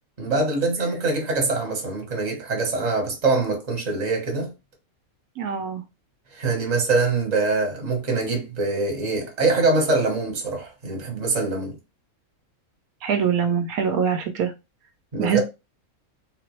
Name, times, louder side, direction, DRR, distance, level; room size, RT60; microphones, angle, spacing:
voice 1, 0.2-4.5 6.3-11.8 15.1-15.4, right 3 dB, 30° right, 1.1 m, -24 dB
voice 2, 5.4-5.8 13.0-14.5 15.2-15.4, right 7 dB, 80° right, 1.1 m, -23 dB
3.7 x 2.5 x 3.0 m
omnidirectional pair, 1.5 m